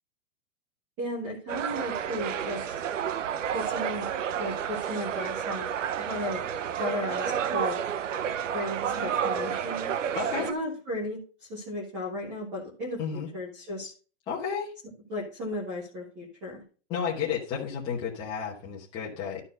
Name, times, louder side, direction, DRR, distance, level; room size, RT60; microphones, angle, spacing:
voice 1, 1.0-2.7 3.5-4.1 4.4-5.7 6.0-6.4 6.8-7.8 8.5-9.9 10.5-11.2 11.5-13.9 15.1-16.6, left 1 dB, 5° right, -4 dB, 0.5 m, -35 dB
sound 1, 1.5-10.5, right 8 dB, 75° right, 0.9 m, -30 dB
voice 2, 10.1-10.5 13.0-13.3 14.3-14.7 16.9-19.4, left 7 dB, 10° left, -5 dB, 1.0 m, -32 dB
12.0 x 4.4 x 5.4 m, 0.38 s
hypercardioid pair, 175°, 38 cm